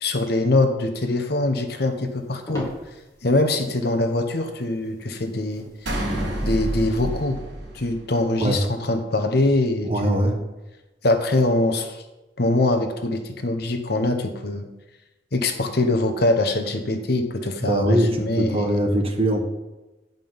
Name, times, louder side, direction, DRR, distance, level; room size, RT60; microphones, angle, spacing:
voice 1, 0.0-2.7 3.2-5.9 6.4-7.4 7.7-10.4 11.0-12.0 12.4-14.7 15.3-18.9, left 2 dB, 60° left, 6 dB, 1.0 m, -23 dB
sound 1, 1.8-7.3, left 1 dB, 20° left, 2.2 m, -41 dB
sound 2, 5.9-8.4, right 1 dB, 85° right, 2.5 m, -28 dB
voice 2, 9.8-10.3 17.6-19.4, right 1 dB, 35° right, 3 dB, 1.2 m, -22 dB
9.9 x 5.3 x 5.5 m, 1.0 s
head